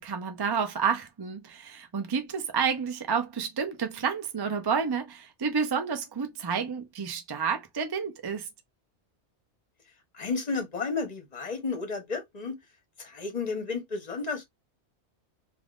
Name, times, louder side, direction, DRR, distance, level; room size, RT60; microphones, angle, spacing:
voice 1, 0.0-8.5, right 6 dB, 35° right, 0.4 m, -30 dB
voice 2, 10.1-12.5 13.0-14.4, left 4 dB, 40° left, 1.0 m, -32 dB
3.5 x 2.5 x 2.4 m
omnidirectional pair, 1.2 m